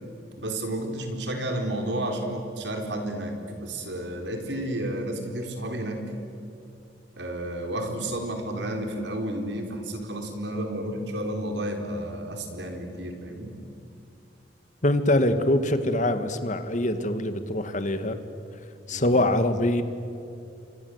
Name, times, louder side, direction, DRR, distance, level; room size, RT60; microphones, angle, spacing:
voice 1, 0.4-6.0 7.2-13.5 18.9-19.1, right 1 dB, 85° right, 4 dB, 4.4 m, -31 dB
voice 2, 14.8-18.2 18.9-19.8, left 1 dB, 45° left, 9 dB, 1.8 m, -24 dB
29.5 x 24.5 x 8.1 m, 2.6 s
head